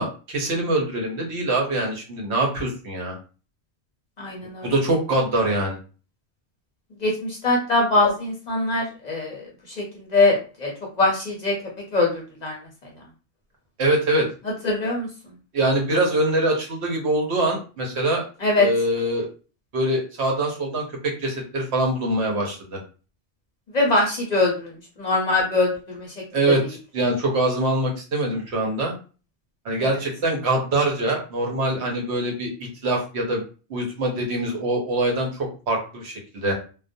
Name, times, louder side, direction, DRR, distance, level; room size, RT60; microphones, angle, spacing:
voice 1, 0.0-3.2 4.6-5.8 13.8-14.3 15.5-18.2 18.6-19.3 19.7-22.8 26.3-26.6 26.9-28.9 29.6-33.4 33.7-36.5, right 1 dB, 75° right, 0 dB, 1.0 m, -24 dB
voice 2, 4.2-4.7 7.0-10.7 11.0-11.5 11.9-12.9 14.6-15.1 18.4-18.7 23.7-24.7 25.0-26.1 26.6-26.7 29.8-29.9, left 2 dB, 50° left, -1 dB, 0.6 m, -22 dB
2.3 x 2.1 x 2.5 m, 0.36 s
omnidirectional pair, 1.1 m